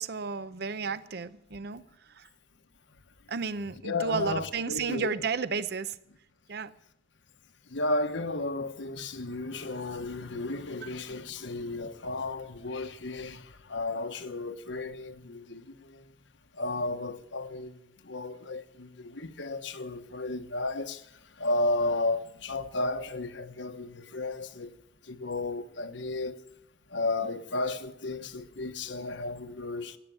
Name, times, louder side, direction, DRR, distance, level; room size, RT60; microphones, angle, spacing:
voice 1, 0.0-1.8 2.1-2.3 3.3-6.0 6.5-6.7, right 5 dB, 60° right, 0.7 m, -32 dB
voice 2, 3.8-5.1 7.7-16.1 16.5-24.7 25.0-26.4 26.9-30.0, left 2 dB, 80° left, 1.2 m, -33 dB
16.0 x 9.7 x 9.2 m
head